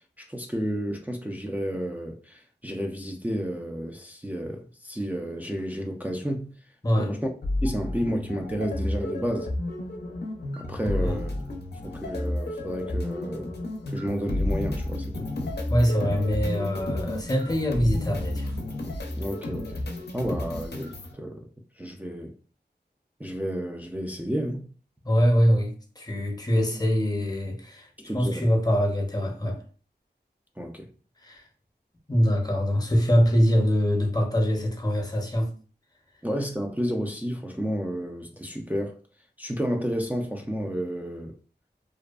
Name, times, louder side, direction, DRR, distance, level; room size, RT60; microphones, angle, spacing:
voice 1, 0.2-6.5 7.0-7.2 7.6-9.5 10.6-11.3 11.8-13.5 13.9-15.3 19.1-19.8 20.1-21.5 21.8-22.3 23.2-24.7 28.0-28.4 30.6-30.9 36.2-39.0 39.4-41.4, equal, 10° right, 0.3 m, -31 dB
voice 2, 6.8-7.2 10.9-11.2 15.7-18.5 25.1-27.9 28.1-29.6 31.2-31.4 32.1-35.5, equal, 20° left, 0.6 m, -24 dB
sound 1, 7.4-21.1, left 1 dB, 70° left, 0.5 m, -31 dB
2.5 x 2.2 x 2.3 m
wide cardioid pair, 60°, 18 cm